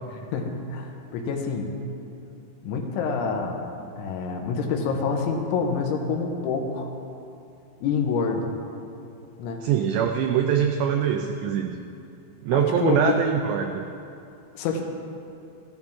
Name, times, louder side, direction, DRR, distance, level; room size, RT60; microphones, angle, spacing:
voice 1, 0.1-1.8 2.6-3.7 4.0-6.9 7.8-8.5 9.4-9.7 12.5-13.2 14.6-14.8, left 5 dB, 80° left, 2 dB, 3.3 m, -27 dB
voice 2, 9.6-11.8 12.4-13.8, right 8 dB, 90° right, 4 dB, 2.4 m, -23 dB
14.0 x 13.0 x 3.6 m, 2.5 s
omnidirectional pair, 5.6 m